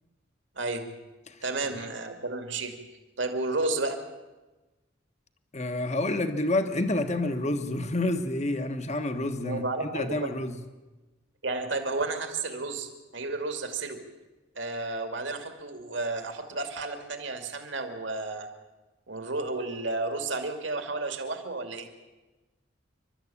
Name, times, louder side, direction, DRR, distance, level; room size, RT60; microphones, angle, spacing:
voice 1, 0.6-0.9 1.4-2.8 3.2-4.0 9.4-10.3 11.4-14.0 14.6-18.5 19.1-21.9, right 3 dB, 65° right, 6 dB, 2.5 m, -32 dB
voice 2, 5.5-10.6, left 2 dB, 35° left, 8 dB, 1.4 m, -29 dB
28.0 x 12.5 x 8.6 m, 1.1 s
head